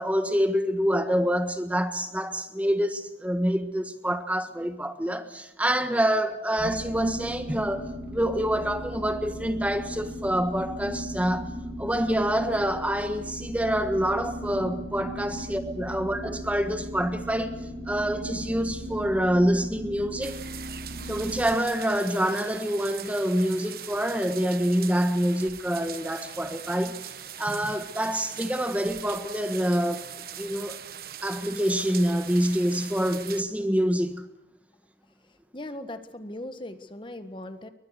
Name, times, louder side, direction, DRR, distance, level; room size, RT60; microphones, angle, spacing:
voice 1, 0.0-7.9 8.1-11.5 11.8-17.6 17.9-20.4 21.1-27.0 27.4-30.1 30.4-30.8 31.2-34.2, equal, 10° right, 1.4 m, -26 dB
sound 1, 6.6-21.6, right 1 dB, 80° right, 5.6 m, -37 dB
sound 2, 20.2-33.4, right 9 dB, 55° right, 1.4 m, -41 dB
voice 2, 35.5-37.7, left 1 dB, 30° left, 1.6 m, -39 dB
30.0 x 23.0 x 6.6 m
head